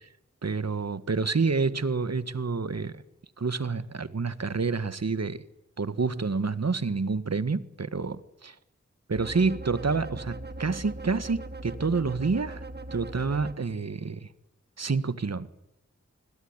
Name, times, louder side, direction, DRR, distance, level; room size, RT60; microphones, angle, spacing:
voice 1, 0.4-3.0 3.4-5.4 5.8-8.2 8.4-8.6 9.1-12.6 12.9-14.3 14.8-15.5, right 4 dB, 60° right, 1.6 m, -28 dB
sound 1, 9.1-13.5, right 2 dB, 35° right, 2.7 m, -40 dB
28.0 x 21.0 x 9.8 m
cardioid pair, 40°, 29 cm